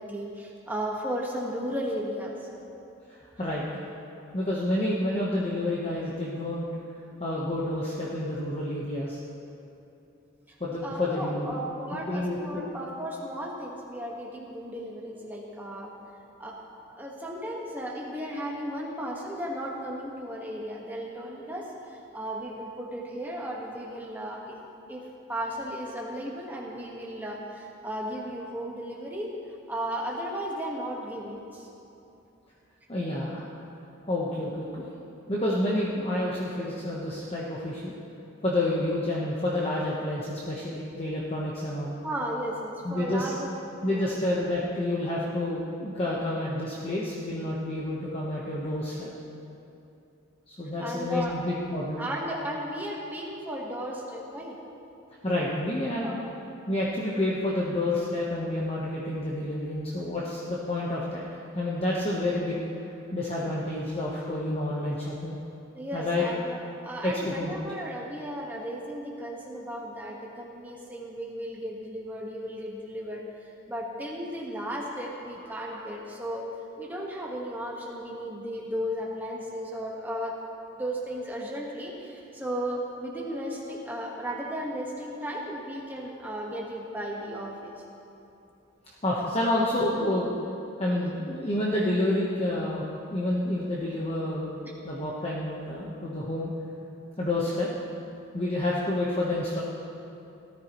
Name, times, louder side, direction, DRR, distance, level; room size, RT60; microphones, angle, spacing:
voice 1, 0.0-2.5 10.5-10.6 10.8-15.9 16.4-16.6 16.9-24.6 24.9-29.3 29.7-31.7 42.0-43.5 43.9-44.2 50.8-51.4 52.0-54.6 56.0-56.2 65.7-76.5 76.8-80.4 80.7-87.8, equal, 10° right, -3 dB, 1.5 m, -35 dB
voice 2, 4.3-6.7 7.2-9.2 10.6-11.6 11.9-12.7 32.9-33.4 34.1-34.9 35.3-37.9 38.4-41.9 42.8-43.3 43.8-49.1 50.5-52.1 55.2-56.1 56.7-61.2 61.5-65.3 65.9-66.3 67.0-67.5 89.0-90.4 90.8-92.8 93.1-94.5 94.8-96.5 97.2-97.7 98.3-99.6, left 1 dB, 30° left, -5 dB, 1.1 m, -29 dB
18.0 x 13.0 x 3.1 m, 2.8 s
head